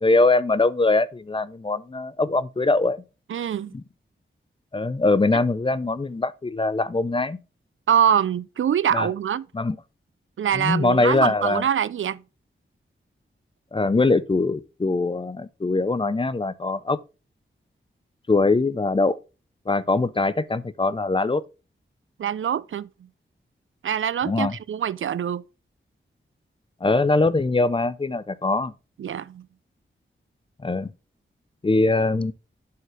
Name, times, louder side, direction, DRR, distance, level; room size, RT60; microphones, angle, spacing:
voice 1, 0.0-3.0 3.7-3.8 4.7-7.4 8.9-9.1 9.5-9.8 10.5-11.6 13.7-17.0 18.3-19.2 19.7-21.4 24.2-24.6 26.8-28.7 30.6-30.9 31.6-32.3, left 3 dB, 25° left, 0.5 m, -22 dB
voice 2, 3.3-3.7 7.9-9.5 10.4-12.2 22.2-22.9 23.8-25.4 29.0-29.5, right 9 dB, 70° right, 0.4 m, -24 dB
7.5 x 5.7 x 3.1 m
wide cardioid pair, 75°, 21 cm